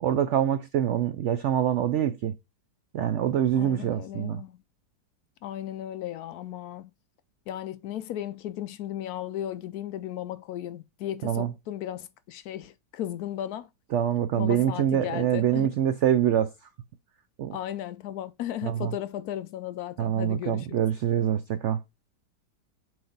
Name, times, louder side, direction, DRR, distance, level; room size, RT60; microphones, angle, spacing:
voice 1, 0.0-2.3 2.9-4.4 11.2-11.5 13.9-16.5 17.4-17.6 18.6-18.9 20.0-21.8, right 10 dB, 80° right, 0.6 m, -25 dB
voice 2, 3.5-4.6 5.4-6.9 7.5-13.7 14.4-15.7 17.5-20.8, left 11 dB, 70° left, 1.0 m, -35 dB
7.8 x 3.2 x 3.9 m
omnidirectional pair, 1.8 m